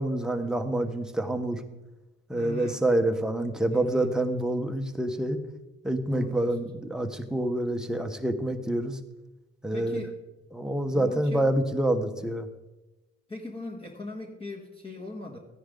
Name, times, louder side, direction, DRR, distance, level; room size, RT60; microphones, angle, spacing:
voice 1, 0.0-1.6 2.3-5.4 5.8-9.0 9.6-10.0 10.5-12.5, right 1 dB, ahead, 6 dB, 1.0 m, -27 dB
voice 2, 2.3-2.8 3.7-4.2 6.1-6.7 9.7-10.2 10.9-11.5 13.3-15.4, left 2 dB, 20° left, -1 dB, 1.5 m, -39 dB
14.0 x 10.0 x 3.8 m, 1.1 s
cardioid pair, 90°, 30 cm